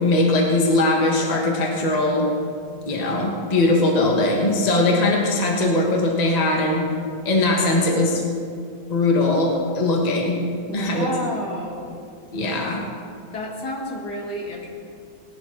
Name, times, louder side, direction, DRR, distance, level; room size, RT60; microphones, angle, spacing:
voice 1, 0.0-2.3 2.9-6.8 7.2-8.2 8.9-10.4 10.7-11.1 12.3-12.8, left 2 dB, 20° left, 0 dB, 1.4 m, -20 dB
voice 2, 10.7-12.0 13.3-14.7, equal, 55° left, -1 dB, 2.4 m, -31 dB
19.0 x 11.0 x 3.9 m, 2.2 s
omnidirectional pair, 2.2 m